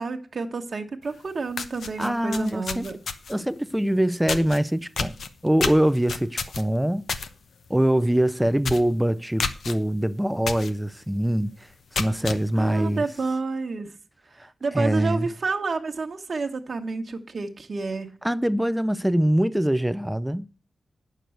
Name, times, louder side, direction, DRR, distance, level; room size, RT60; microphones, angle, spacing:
voice 1, 0.0-3.0 12.6-13.9 14.6-18.1, right 4 dB, 55° right, 1.1 m, -29 dB
sound 1, 1.1-1.2 1.5-3.4 4.3-4.6 5.0-7.3 7.6-7.9 8.2-8.3 8.6-8.9 9.4-9.7 10.5-10.7 11.2-11.3 11.7-12.4, left 5 dB, 85° left, 0.9 m, -30 dB
voice 2, 2.0-2.9 3.3-5.2 5.4-7.1 7.7-13.0 14.4-14.5 14.7-15.3 18.2-20.4, right 1 dB, 5° right, 0.4 m, -23 dB
9.2 x 6.7 x 7.7 m
wide cardioid pair, 110°, 0 cm